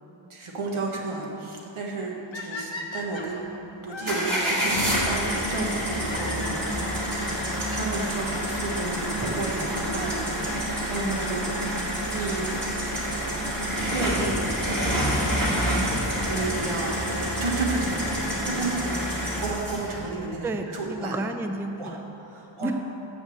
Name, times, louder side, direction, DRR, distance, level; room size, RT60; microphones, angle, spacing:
voice 1, 0.3-3.5 3.8-11.5 12.1-12.6 13.8-14.6 16.3-17.0 17.4-21.1 21.8-22.7, right 3 dB, 90° right, -1 dB, 1.3 m, -32 dB
sound 1, 2.3-4.5 6.0-7.1 8.0-8.1 8.8-8.9 9.1-9.2 11.1-11.3 14.1-14.2 15.3-15.4 16.8-16.9 17.2-17.3 17.5-17.6 17.8-17.9 18.1-18.2 18.3-18.4 18.7-18.8, left 2 dB, 70° left, 0.9 m, -37 dB
sound 2, 4.1-20.0, equal, 45° right, 1.8 m, -28 dB
voice 2, 15.8-16.2 20.4-22.0 22.6-22.7, right 2 dB, 5° right, 6 dB, 0.3 m, -32 dB
6.5 x 6.3 x 6.4 m, 2.9 s
wide cardioid pair, 80°, 48 cm